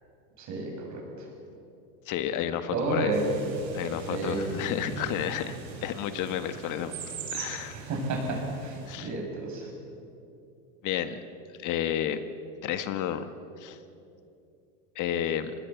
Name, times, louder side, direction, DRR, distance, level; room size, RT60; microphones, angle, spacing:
voice 1, 0.4-1.3 2.7-3.5 4.1-4.4 4.6-4.7 7.7-9.7, right 2 dB, 45° right, 1 dB, 7.6 m, -31 dB
voice 2, 2.1-3.1 3.7-6.9 7.3-7.8 8.9-9.1 10.8-11.2 11.6-12.2 12.6-13.3 13.6-13.8 15.0-15.5, left 10 dB, 50° left, 10 dB, 1.6 m, -31 dB
sound 1, 3.1-9.0, right 5 dB, 85° right, 5.2 m, -40 dB
25.5 x 20.0 x 7.2 m, 2.7 s
supercardioid pair, 105°, 40 cm